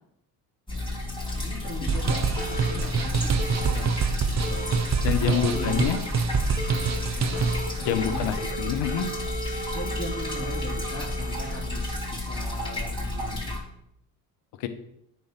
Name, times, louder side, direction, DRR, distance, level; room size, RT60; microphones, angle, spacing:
sound 1, 0.7-13.6, left 2 dB, 10° left, 4.1 m, -31 dB
voice 1, 1.3-3.2 3.5-3.9 4.2-4.7 5.2-6.1 7.1-7.5 7.8-8.3 9.7-13.6, equal, 30° left, -7 dB, 2.9 m, -37 dB
sound 2, 1.9-7.7, right 5 dB, 35° right, 0.9 m, -26 dB
sound 3, 2.4-2.7 3.4-3.7 4.4-4.8 5.5-5.8 6.6-6.9 7.3-8.1 8.4-12.1, right 2 dB, 85° left, 1.3 m, -36 dB
voice 2, 5.0-6.0 7.9-9.1 14.6-14.7, left 10 dB, 65° left, 9 dB, 1.2 m, -26 dB
9.2 x 4.6 x 5.9 m, 0.77 s
hypercardioid pair, 60°, 46 cm